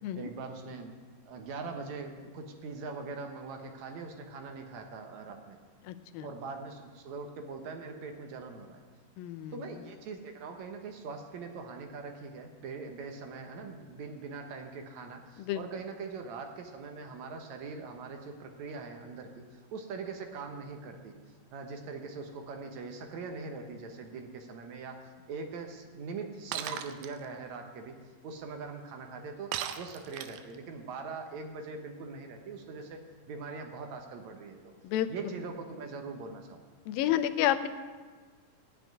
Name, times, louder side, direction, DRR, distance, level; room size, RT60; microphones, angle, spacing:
voice 1, 0.2-0.9 1.3-5.6 6.2-8.8 9.5-21.1 21.5-25.0 25.3-28.0 28.2-33.0 33.3-34.6 35.1-36.7, right 4 dB, 65° right, 5 dB, 2.1 m, -42 dB
voice 2, 5.8-6.3 9.2-9.7 15.4-15.6 34.8-35.1 36.9-37.7, left 12 dB, 80° left, 10 dB, 2.4 m, -30 dB
Shatter, 26.5-27.1 29.5-30.6, right 10 dB, 85° right, 2.3 m, -36 dB
15.5 x 6.1 x 9.4 m, 1.5 s
omnidirectional pair, 4.2 m